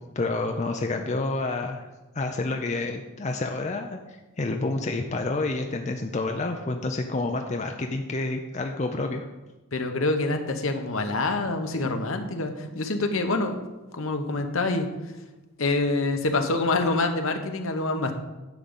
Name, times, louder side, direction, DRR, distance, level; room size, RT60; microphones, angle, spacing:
voice 1, 0.0-1.8 2.1-9.3, left 2 dB, 30° left, 4 dB, 0.5 m, -29 dB
voice 2, 9.7-13.6 13.9-14.9 15.6-18.1, left 2 dB, 70° left, 6 dB, 0.9 m, -26 dB
10.5 x 3.8 x 7.2 m, 1.1 s
head